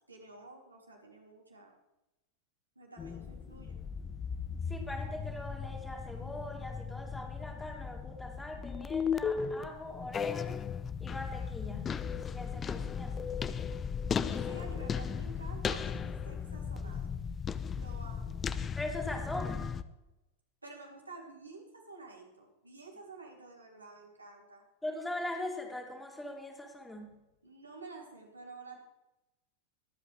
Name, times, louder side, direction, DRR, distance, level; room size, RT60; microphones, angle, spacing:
voice 1, 0.1-1.8 2.7-3.8 14.3-17.2 17.7-18.4 20.6-24.6 27.4-28.8, right 3 dB, 80° right, -1 dB, 2.8 m, -50 dB
sound 1, 3.0-19.8, left 6 dB, 20° left, 0.5 m, -36 dB
voice 2, 4.7-10.6 11.0-11.9 12.3-13.3 18.8-19.7 24.8-27.2, left 1 dB, 5° left, 0 dB, 2.7 m, -41 dB
22.5 x 8.3 x 3.3 m, 0.96 s
figure-of-eight pair, 90°, 0 cm